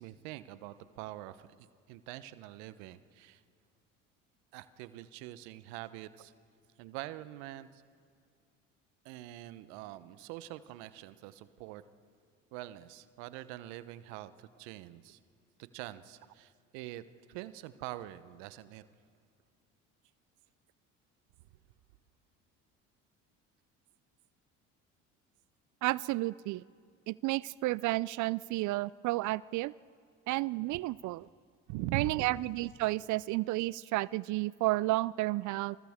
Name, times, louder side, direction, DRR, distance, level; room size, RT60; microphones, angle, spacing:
voice 1, 0.0-3.4 4.5-6.3 6.8-7.8 9.0-11.8 12.5-15.2 15.6-17.0 17.3-18.8 31.7-32.3, right 15 dB, 70° right, 14 dB, 1.0 m, -44 dB
voice 2, 25.8-26.6 27.1-29.7 30.3-31.2 31.9-35.8, right 19 dB, 55° right, 21 dB, 0.4 m, -31 dB
27.5 x 27.5 x 3.6 m, 2.1 s
hypercardioid pair, 65°, 37 cm